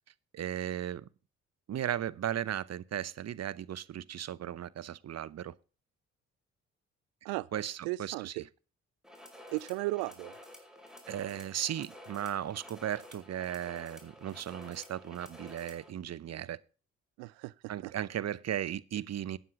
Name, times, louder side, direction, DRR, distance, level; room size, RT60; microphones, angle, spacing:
voice 1, 0.3-1.1 1.7-5.5 7.5-8.5 11.1-16.6 17.7-19.4, right 11 dB, 45° right, 0.8 m, -36 dB
voice 2, 7.9-8.4 9.5-10.3 17.2-17.5 17.8-17.9, right 21 dB, 75° right, 0.5 m, -35 dB
sound 1, 9.0-15.9, left 1 dB, ahead, 5.1 m, -51 dB
13.0 x 9.4 x 3.7 m
hypercardioid pair, 45°, 35 cm